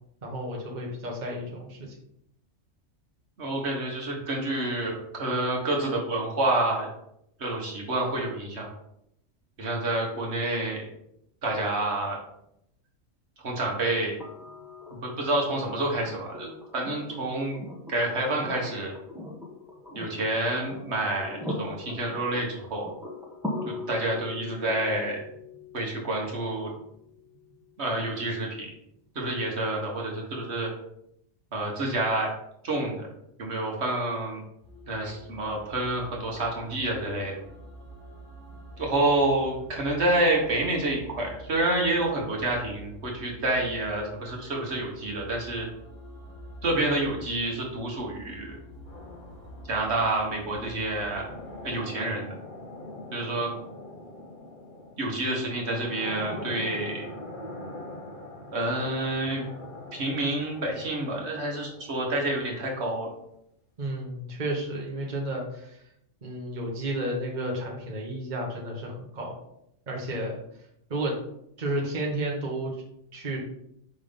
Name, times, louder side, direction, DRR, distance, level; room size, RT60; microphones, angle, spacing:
voice 1, 0.2-2.0 63.8-65.8 66.2-69.4 69.9-70.4 70.9-71.2 71.6-72.8 73.1-73.4, right 1 dB, 40° right, -1 dB, 1.1 m, -32 dB
voice 2, 3.4-6.9 7.4-8.7 9.6-10.9 11.4-12.2 13.4-14.2 14.9-17.6 17.9-18.9 19.9-22.9 23.7-25.2 25.7-26.7 27.8-28.7 29.1-30.7 31.5-32.3 32.6-33.1 33.4-34.4 34.9-37.4 38.8-45.7 46.6-48.6 49.7-51.3 51.6-52.3 53.1-53.5 55.0-57.1 58.5-59.5 59.9-63.1, right 2 dB, 65° right, -1 dB, 1.6 m, -28 dB
sound 1, 14.2-28.1 29.9-30.0, left 2 dB, 5° right, 1.0 m, -41 dB
sound 2, 34.6-51.7, equal, 20° left, 2.2 m, -47 dB
sound 3, 48.9-62.7, left 1 dB, 45° left, 1.2 m, -43 dB
5.3 x 3.6 x 5.1 m, 0.77 s
omnidirectional pair, 1.2 m